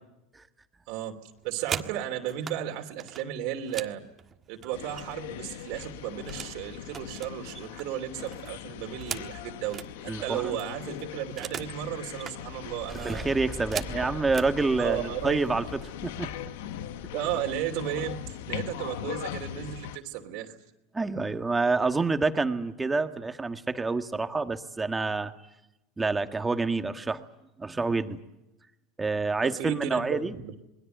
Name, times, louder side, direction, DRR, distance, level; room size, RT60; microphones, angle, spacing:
voice 1, 0.9-4.0 4.5-13.3 13.9-14.0 14.8-15.4 17.1-18.2 18.5-20.6 29.4-30.5, right 11 dB, 65° right, 3 dB, 2.9 m, -34 dB
sound 1, 1.3-2.6 3.0-5.3 5.6-6.6 6.9-9.9 10.3-10.4 10.6-11.8 12.1-12.4 12.9-14.5 15.4-15.5 15.9-16.2 16.5-17.0, right 7 dB, 30° right, 1.6 m, -40 dB
sound 2, 4.7-20.0, left 11 dB, 80° left, 1.2 m, -40 dB
voice 2, 10.1-10.6 12.9-15.6 16.0-16.3 20.9-25.3 26.0-27.2 27.6-28.2 29.0-30.4, right 3 dB, 15° right, 8 dB, 1.7 m, -27 dB
sound 3, 12.5-17.6, left 1 dB, 10° left, 4.7 m, -44 dB
27.5 x 21.0 x 8.0 m, 0.91 s
supercardioid pair, 115°, 0 cm